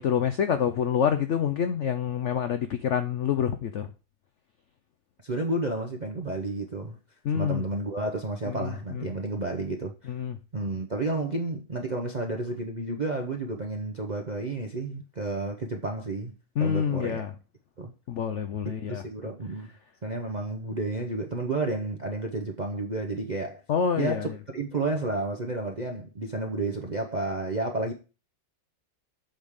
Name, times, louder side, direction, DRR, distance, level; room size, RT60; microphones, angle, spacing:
voice 1, 0.0-3.9 7.2-7.6 8.6-8.7 10.1-10.4 16.6-17.3 18.1-19.0 23.7-24.2, left 8 dB, 70° left, 0.6 m, -27 dB
voice 2, 5.2-7.0 7.3-10.1 10.5-17.2 17.8-17.9 18.9-19.7 20.0-23.6 23.9-27.9, right 2 dB, 45° right, 0.5 m, -31 dB
7.8 x 3.6 x 6.4 m
omnidirectional pair, 1.9 m